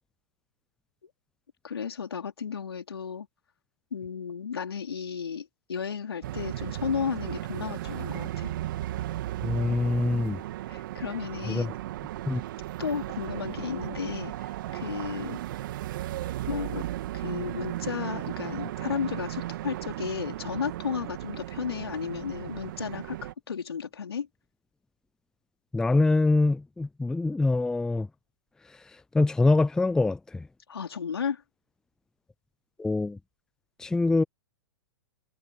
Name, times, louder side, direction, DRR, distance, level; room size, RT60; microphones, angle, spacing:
voice 1, 1.6-3.3 3.9-8.5 10.7-11.7 12.8-15.4 16.5-16.9 17.1-24.3 30.7-31.4, left 7 dB, 85° left, 4.0 m, -34 dB
sound 1, 6.2-23.3, right 14 dB, 55° right, 3.0 m, -35 dB
voice 2, 9.4-10.4 11.5-11.7 12.3-12.4 25.7-28.1 29.1-30.4 32.8-33.2 33.8-34.2, left 3 dB, 5° left, 0.5 m, -24 dB
hypercardioid pair, 120°, 13 cm